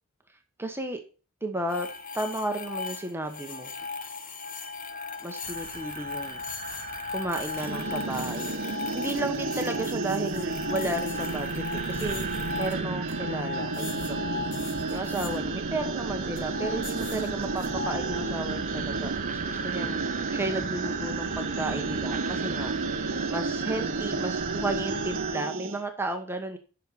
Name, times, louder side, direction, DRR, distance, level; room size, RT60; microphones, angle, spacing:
voice 1, 0.6-1.0 1.4-1.9 2.1-3.7 5.2-6.4 7.1-12.3 12.6-20.0 20.3-22.7 23.3-26.6, right 1 dB, 10° right, 5 dB, 1.0 m, -33 dB
sound 1, 1.7-15.4 16.2-18.8, left 4 dB, 40° left, 1.2 m, -38 dB
sound 2, 5.4-25.4, right 6 dB, 35° right, 0.7 m, -38 dB
sound 3, 7.5-25.8, right 3 dB, 60° right, 0.9 m, -32 dB
7.8 x 6.2 x 6.8 m, 0.37 s
head